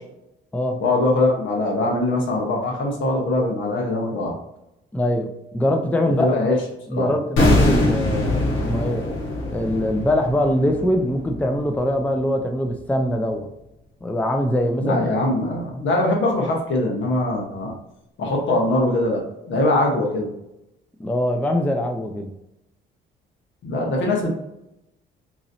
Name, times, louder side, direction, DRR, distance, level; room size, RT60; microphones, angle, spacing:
voice 1, 0.8-4.3 6.2-6.6 6.9-7.1 14.8-17.7 18.2-19.2 19.5-20.3 23.6-24.3, left 2 dB, 70° left, 0 dB, 1.2 m, -22 dB
voice 2, 4.9-6.3 6.9-9.0 9.5-13.5 14.0-15.0 21.0-22.3, left 1 dB, 5° left, 4 dB, 0.4 m, -23 dB
sound 1, 7.4-12.4 12.6-12.8, left 1 dB, 90° left, 1.0 m, -23 dB
3.8 x 3.1 x 2.6 m, 0.87 s
cardioid pair, 90°, 20 cm